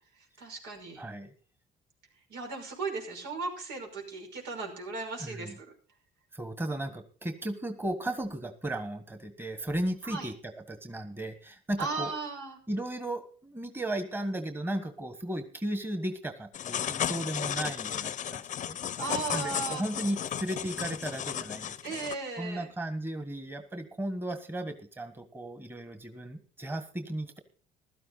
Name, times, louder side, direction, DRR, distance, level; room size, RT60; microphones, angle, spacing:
voice 1, 0.4-1.0 2.3-5.7 10.0-10.3 11.8-12.6 17.5-17.7 19.0-19.8 21.8-22.7, right 4 dB, 85° right, 2 dB, 5.7 m, -36 dB
voice 2, 1.0-1.3 5.2-5.6 6.3-12.1 12.7-18.8 19.3-27.4, right 1 dB, 10° right, 9 dB, 1.5 m, -35 dB
sound 1, 16.5-22.1, left 10 dB, 45° left, 0.7 m, -34 dB
15.5 x 12.5 x 4.0 m, 0.39 s
cardioid pair, 110°, 17 cm